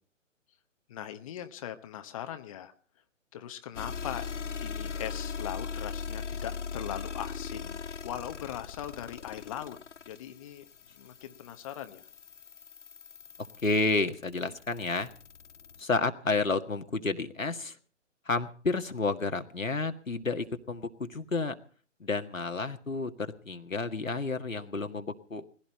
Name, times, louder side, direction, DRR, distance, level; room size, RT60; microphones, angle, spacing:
voice 1, 0.9-2.7 3.3-4.3 4.6-7.8 8.0-9.8 10.1-10.7 11.0-12.0, left 11 dB, 25° left, 8 dB, 1.0 m, -40 dB
sound 1, 3.7-15.8, left 5 dB, 65° left, 0.8 m, -40 dB
voice 2, 13.6-15.1 15.8-17.8 18.3-21.6 22.0-25.4, left 3 dB, 85° left, 7 dB, 1.9 m, -30 dB
20.0 x 16.0 x 4.3 m, 0.43 s
figure-of-eight pair, 135°, 39 cm